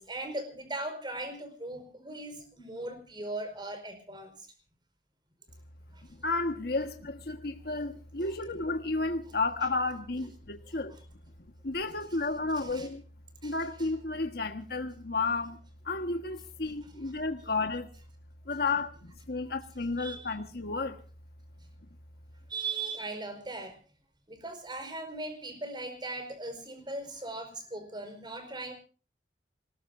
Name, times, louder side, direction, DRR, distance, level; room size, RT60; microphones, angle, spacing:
voice 1, 0.0-4.4 5.9-6.0 8.2-8.3 12.5-12.9 13.4-13.9 20.0-20.3 22.5-23.8 24.3-28.7, right 2 dB, 25° right, 5.1 m, -39 dB
voice 2, 6.2-11.0 11.6-13.0 13.4-15.6 15.8-17.9 18.5-21.0, left 3 dB, 60° left, 1.5 m, -32 dB
26.5 x 19.5 x 2.7 m
head